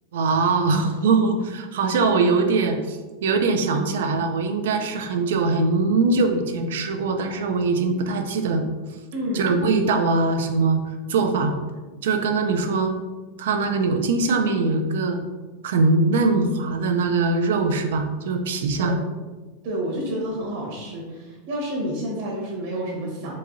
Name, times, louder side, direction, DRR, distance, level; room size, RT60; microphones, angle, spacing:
voice 1, 0.1-8.6 9.3-10.8 11.1-11.5 12.0-13.0 13.4-15.2 15.6-19.0, right 3 dB, 80° right, 5 dB, 0.5 m, -22 dB
voice 2, 9.1-9.5 18.8-19.0 19.6-23.3, right 1 dB, 60° right, -3 dB, 1.3 m, -29 dB
4.6 x 2.8 x 2.7 m, 1.3 s
supercardioid pair, 165°, 0 cm